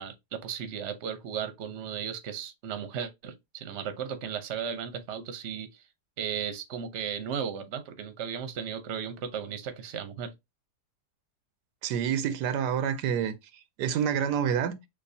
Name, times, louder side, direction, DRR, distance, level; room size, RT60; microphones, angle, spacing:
voice 1, 0.0-5.8 6.2-10.3, right 7 dB, 50° right, 1.0 m, -35 dB
voice 2, 11.8-13.3 13.8-14.8, right 8 dB, 85° right, 1.2 m, -27 dB
6.5 x 2.7 x 2.7 m
omnidirectional pair, 1.7 m